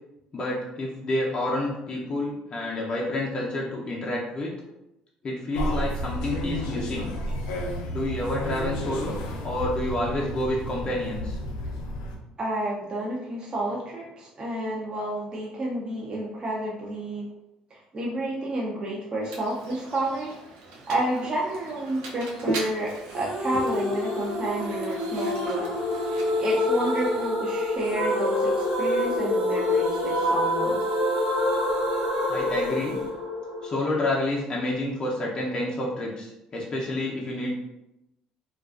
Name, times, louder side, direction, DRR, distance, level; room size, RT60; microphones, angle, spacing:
voice 1, 0.3-4.5 5.2-7.1 7.9-9.1 9.4-11.4 32.3-33.0 33.6-37.5, left 1 dB, 35° left, -4 dB, 0.5 m, -29 dB
sound 1, 5.5-12.2, equal, 90° left, 0.4 m, -31 dB
voice 2, 12.4-17.3 17.7-20.3 20.9-25.6 26.1-30.8, right 1 dB, 30° right, -3 dB, 0.5 m, -30 dB
Mechanisms, 19.2-27.3, right 2 dB, 85° right, 0.5 m, -38 dB
sound 2, 23.1-34.1, left 1 dB, 65° right, 1.0 m, -26 dB
2.3 x 2.2 x 2.3 m, 0.91 s
supercardioid pair, 85°, 3 cm